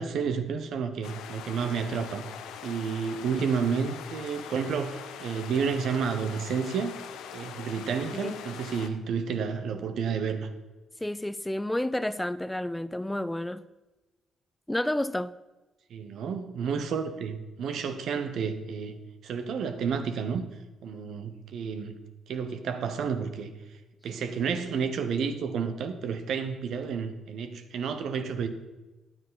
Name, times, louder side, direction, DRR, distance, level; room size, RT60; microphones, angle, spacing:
voice 1, 0.0-2.2 2.6-6.9 7.3-10.5 15.9-19.0 19.2-20.5 20.8-22.0 22.3-28.5, right 6 dB, 65° right, 1.0 m, -31 dB
sound 1, 1.0-8.9, left 8 dB, 75° left, 0.7 m, -42 dB
voice 2, 11.0-13.6 14.7-15.4, left 1 dB, 10° left, 0.4 m, -30 dB
9.8 x 9.2 x 4.1 m
hypercardioid pair, 50°, 0 cm